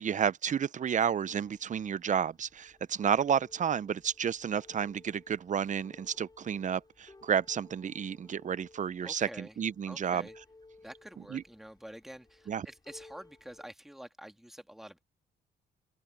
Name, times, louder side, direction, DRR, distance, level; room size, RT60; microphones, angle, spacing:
voice 1, 0.0-10.3 11.3-11.4 12.5-12.7, right 8 dB, 40° right, 0.6 m, -31 dB
sound 1, 1.2-13.7, left 2 dB, 20° left, 6.4 m, -59 dB
voice 2, 9.0-9.6 9.9-10.4 10.8-15.0, equal, ahead, 1.9 m, -48 dB
open air
cardioid pair, 90°, 20 cm